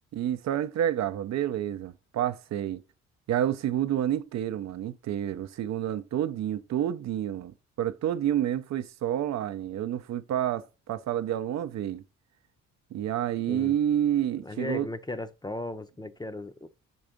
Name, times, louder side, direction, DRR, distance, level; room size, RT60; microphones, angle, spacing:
voice 1, 0.1-2.8 3.3-12.0 12.9-14.9, right 11 dB, 65° right, 0.6 m, -29 dB
voice 2, 14.4-16.7, left 2 dB, 15° left, 0.6 m, -36 dB
6.1 x 3.3 x 5.1 m
cardioid pair, 90°, 30 cm